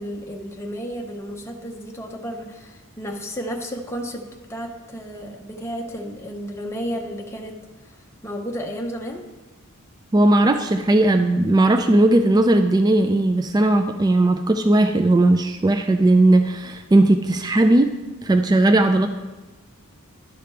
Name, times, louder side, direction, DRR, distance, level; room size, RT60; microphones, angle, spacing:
voice 1, 0.0-4.2 4.5-8.0 8.2-9.2, equal, 10° left, 0 dB, 0.7 m, -32 dB
voice 2, 10.1-17.9 18.2-19.1, right 2 dB, 20° right, 7 dB, 0.3 m, -17 dB
11.5 x 5.1 x 4.5 m, 1.2 s
head